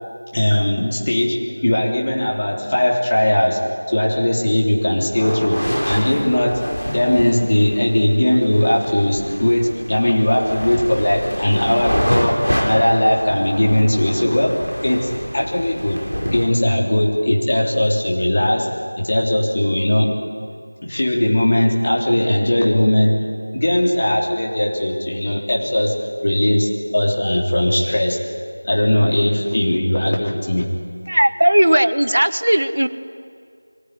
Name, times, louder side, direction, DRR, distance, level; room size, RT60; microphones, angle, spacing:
voice 1, 0.3-16.0 16.3-20.2 20.8-23.2 23.5-28.2 28.6-30.7, left 1 dB, 35° left, -1 dB, 3.5 m, -19 dB
sound 1, 5.0-16.5, equal, 85° left, 6.3 m, -26 dB
voice 2, 31.1-32.9, right 1 dB, 60° right, 11 dB, 1.1 m, -16 dB
24.0 x 19.5 x 9.8 m, 2.2 s
figure-of-eight pair, 175°, 0 cm